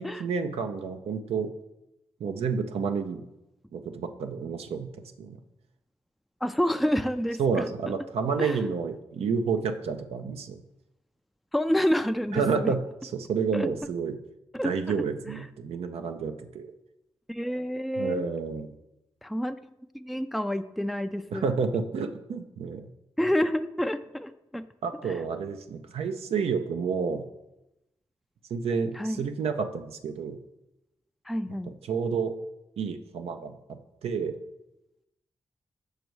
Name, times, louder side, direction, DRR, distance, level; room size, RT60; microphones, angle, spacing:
voice 1, 0.0-1.5 2.2-3.2 3.7-5.4 7.4-10.6 12.3-14.1 14.6-16.7 18.0-18.7 21.3-22.9 24.8-27.2 28.5-30.4 31.5-31.6 31.9-32.3 32.8-34.4, right 5 dB, 80° right, 7 dB, 0.5 m, -30 dB
voice 2, 6.4-7.7 8.4-8.6 11.5-12.7 13.5-13.7 14.5-14.7 17.3-18.3 19.2-19.6 19.9-21.5 23.2-24.7 25.0-25.1 28.9-29.2 31.3-31.7, equal, ahead, 9 dB, 0.4 m, -28 dB
6.4 x 5.3 x 4.6 m, 0.92 s
cardioid pair, 50°, 10 cm